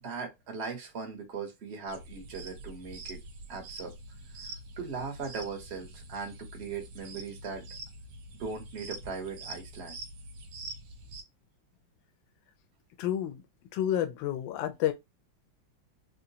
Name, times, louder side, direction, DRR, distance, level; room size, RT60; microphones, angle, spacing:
voice 1, 0.0-3.2 3.5-3.9 4.8-7.7 8.4-10.0, right 5 dB, 45° right, 0.9 m, -39 dB
sound 1, 1.9-11.2, right 2 dB, 70° right, 1.3 m, -45 dB
voice 2, 13.0-13.4 13.7-14.9, left 11 dB, 75° left, 1.2 m, -29 dB
3.8 x 2.2 x 2.7 m
omnidirectional pair, 2.3 m